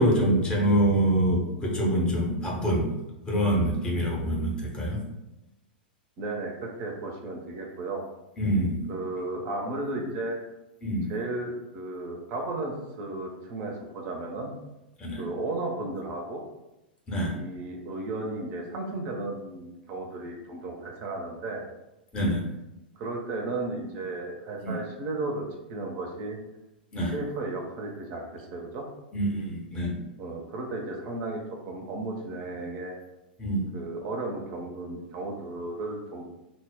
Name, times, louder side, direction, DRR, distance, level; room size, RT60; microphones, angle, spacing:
voice 1, 0.0-2.9 3.3-5.0 8.4-8.8 10.8-11.1 15.0-15.3 17.1-17.3 22.1-22.5 24.6-24.8 26.9-27.1 29.1-30.0 33.4-33.6, right 1 dB, 15° left, -2 dB, 0.6 m, -25 dB
voice 2, 6.2-8.0 8.9-10.4 11.1-14.5 15.2-16.4 17.3-21.6 23.0-26.4 27.0-28.9 30.2-33.0 33.7-36.2, right 2 dB, 35° right, 1 dB, 0.4 m, -34 dB
2.0 x 2.0 x 3.4 m, 0.95 s
figure-of-eight pair, 95°, 5 cm